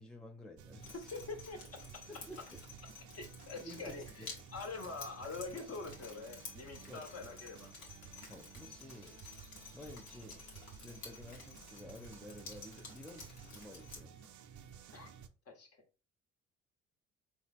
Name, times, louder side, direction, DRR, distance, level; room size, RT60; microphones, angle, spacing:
voice 1, 0.0-1.1 2.1-2.6 3.6-4.3 6.9-7.4 8.3-9.2 9.7-10.5 10.7-14.3, left 1 dB, ahead, 0.6 m, -52 dB
sound 1, 0.6-15.3, right 8 dB, 60° right, 0.6 m, -55 dB
Drip, 0.8-14.0, left 4 dB, 75° left, 1.5 m, -53 dB
voice 2, 1.1-2.1 3.2-7.7 14.9-15.1 15.5-15.7, left 3 dB, 45° left, 1.4 m, -45 dB
4.1 x 2.4 x 4.2 m
hypercardioid pair, 55°, 35 cm